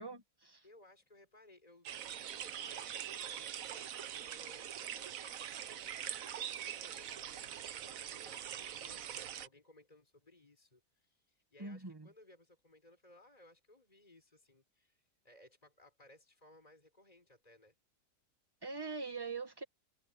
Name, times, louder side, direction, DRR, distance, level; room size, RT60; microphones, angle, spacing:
voice 1, 0.0-0.6 11.6-12.1 18.6-19.6, right 4 dB, 15° right, 1.7 m, -43 dB
voice 2, 0.6-17.7, left 2 dB, 25° left, 5.1 m, -62 dB
sound 1, 1.9-9.5, right 10 dB, 65° right, 1.2 m, -43 dB
omnidirectional pair, 1.6 m